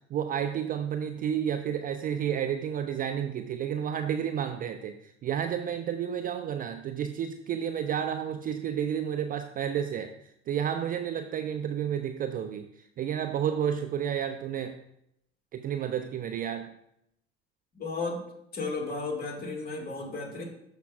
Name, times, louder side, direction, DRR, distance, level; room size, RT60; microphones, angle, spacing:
voice 1, 0.1-10.2 10.5-12.7 13.0-14.8 15.5-16.7, right 9 dB, 30° right, 8 dB, 0.4 m, -31 dB
voice 2, 17.8-18.2 18.5-20.4, left 3 dB, 30° left, 0 dB, 2.2 m, -34 dB
12.5 x 5.2 x 2.5 m, 0.78 s
figure-of-eight pair, 65°, 32 cm